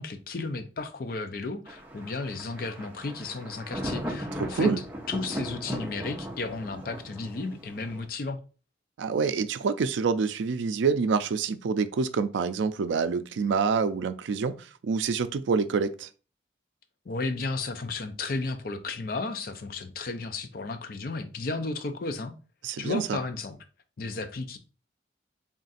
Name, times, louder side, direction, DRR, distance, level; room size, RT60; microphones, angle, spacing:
voice 1, 0.0-4.7 5.1-8.4 17.1-22.3 22.8-23.6 24.0-24.6, left 3 dB, 50° left, 0.4 m, -33 dB
Thunder, 1.7-8.1, equal, 10° right, 0.6 m, -37 dB
voice 2, 4.4-4.8 9.0-14.5 14.8-16.1 22.6-23.2, right 5 dB, 80° right, 0.4 m, -27 dB
3.6 x 2.5 x 4.0 m
head